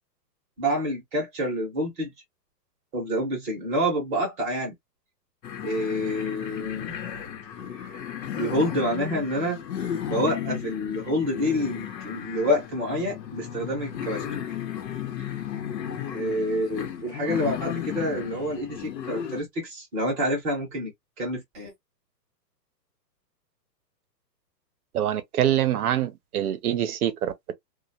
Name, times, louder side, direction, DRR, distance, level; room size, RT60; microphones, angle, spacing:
voice 1, 0.6-2.1 2.9-4.7 5.6-6.9 7.7-8.0 8.4-9.6 10.1-14.2 16.1-20.9 21.2-21.7, equal, 15° right, 0.8 m, -27 dB
sound 1, 5.4-19.4, left 9 dB, 80° left, 0.9 m, -34 dB
voice 2, 24.9-27.5, right 11 dB, 60° right, 0.7 m, -25 dB
2.3 x 2.1 x 2.7 m
hypercardioid pair, 155°, 50 cm